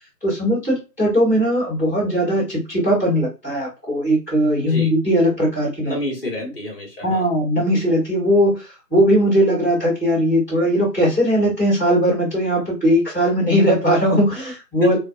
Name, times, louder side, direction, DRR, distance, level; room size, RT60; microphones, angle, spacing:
voice 1, 0.2-5.9 6.4-6.5 7.0-15.0, equal, 10° right, -16 dB, 1.0 m, -19 dB
voice 2, 4.6-4.9 5.8-7.3 14.8-15.0, left 1 dB, 35° left, 1 dB, 1.0 m, -28 dB
2.4 x 2.3 x 2.5 m, 0.29 s
figure-of-eight pair, 165°, 48 cm